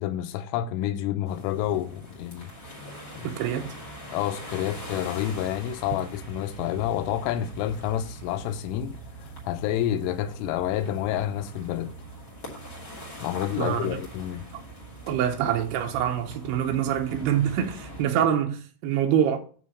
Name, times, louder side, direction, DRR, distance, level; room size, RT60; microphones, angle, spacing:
voice 1, 0.0-2.5 3.2-3.3 4.1-9.0 9.4-11.9 13.2-14.5, left 11 dB, 85° left, 3.2 m, -29 dB
sound 1, 1.2-18.0, right 1 dB, 35° left, 1.9 m, -42 dB
voice 2, 3.2-3.7 13.6-14.0 15.1-19.4, right 9 dB, 80° right, 2.4 m, -25 dB
9.4 x 3.6 x 6.4 m
omnidirectional pair, 5.8 m